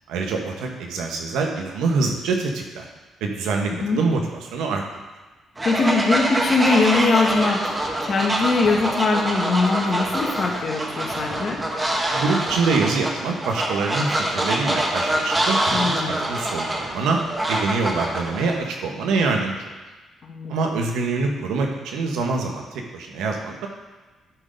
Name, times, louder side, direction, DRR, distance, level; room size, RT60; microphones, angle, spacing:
voice 1, 0.1-2.9 3.2-4.8 12.1-19.6 20.5-23.7, right 4 dB, 90° right, 2 dB, 1.2 m, -25 dB
voice 2, 5.6-7.6 8.0-11.6 15.7-16.2 20.2-20.5, left 3 dB, 50° left, 1 dB, 1.4 m, -21 dB
Fowl, 5.6-18.6, right 1 dB, 20° right, 1.4 m, -25 dB
10.5 x 3.9 x 5.2 m, 1.2 s
cardioid pair, 90°, 0 cm